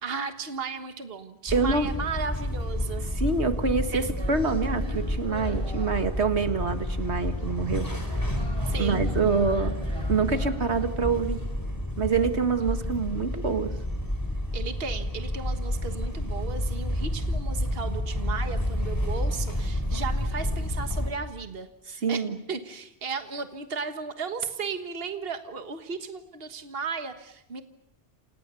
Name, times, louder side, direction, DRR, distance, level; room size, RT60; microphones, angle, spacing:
voice 1, 0.0-3.0 3.9-4.1 4.5-4.8 8.6-9.1 14.5-22.2 22.5-27.6, right 5 dB, 60° right, 8 dB, 1.7 m, -35 dB
sound 1, 1.5-21.1, left 1 dB, 20° left, 4.7 m, -30 dB
voice 2, 1.5-1.9 3.2-7.9 8.1-8.3 8.8-9.8 10.1-11.4 12.0-13.7 22.0-22.4, right 4 dB, 85° right, 9 dB, 2.2 m, -26 dB
sound 2, 4.2-10.9, equal, 25° right, 4.1 m, -43 dB
29.0 x 28.5 x 7.0 m, 0.86 s
omnidirectional pair, 1.1 m